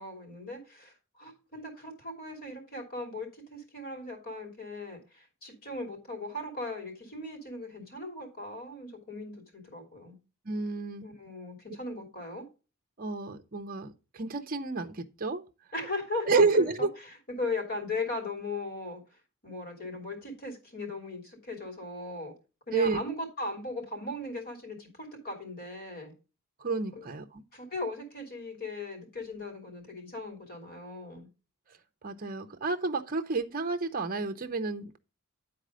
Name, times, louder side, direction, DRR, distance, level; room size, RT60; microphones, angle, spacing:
voice 1, 0.0-10.2 11.0-12.4 15.7-16.9 17.3-19.0 19.4-22.3 22.7-26.1 26.9-27.0 27.5-31.3, left 2 dB, 40° left, 3.1 m, -38 dB
voice 2, 10.5-11.1 13.0-15.4 16.3-16.9 22.7-23.0 26.6-27.4 32.0-35.0, right 3 dB, 40° right, 0.7 m, -30 dB
10.5 x 4.2 x 5.0 m
head